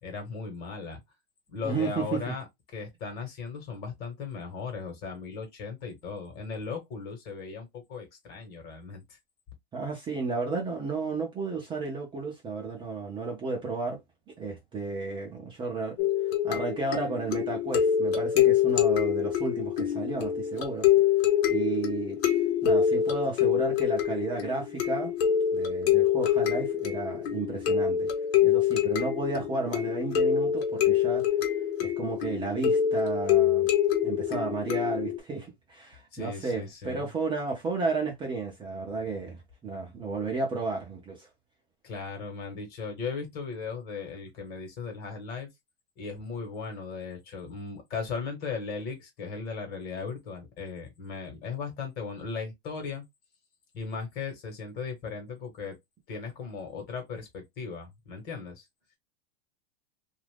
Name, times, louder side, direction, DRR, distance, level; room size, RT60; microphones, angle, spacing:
voice 1, 0.0-1.0 1.5-2.4 2.7-9.0 36.1-37.1 41.8-45.5 46.0-53.0 53.7-55.8 56.1-58.6, left 5 dB, 30° left, 1.2 m, -37 dB
voice 2, 1.6-2.4 9.7-14.0 14.4-16.0 16.4-20.9 21.5-22.2 22.6-25.1 25.5-28.1 28.4-31.2 31.8-33.7 34.0-41.3, right 4 dB, 15° right, 0.6 m, -33 dB
sound 1, 16.0-35.2, left 9 dB, 80° left, 1.0 m, -25 dB
2.6 x 2.5 x 3.4 m
supercardioid pair, 155°, 31 cm